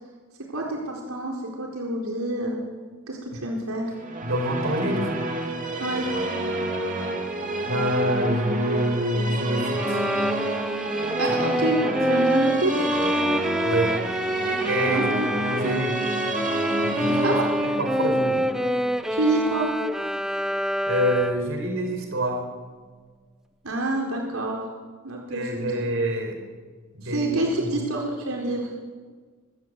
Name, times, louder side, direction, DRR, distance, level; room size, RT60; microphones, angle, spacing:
voice 1, 0.5-2.6 3.1-3.8 5.8-6.1 11.2-11.8 12.1-12.9 14.9-15.3 15.6-15.8 17.2-17.5 18.0-18.2 19.1-19.7 23.6-24.6 25.0-25.7 27.0-28.7, right 2 dB, 80° right, -1 dB, 4.0 m, -27 dB
Musical instrument, 3.9-19.4, right 1 dB, 35° right, 2.8 m, -29 dB
voice 2, 4.2-5.2 7.7-10.0 11.2-11.3 11.8-11.9 13.6-14.0 14.6-15.1 15.5-15.9 16.8-18.4 20.9-22.4 25.3-26.4 26.9-27.8, equal, 65° right, 4 dB, 4.7 m, -27 dB
Bowed string instrument, 9.8-21.6, equal, ahead, 0.9 m, -26 dB
24.0 x 16.5 x 8.1 m, 1.5 s
head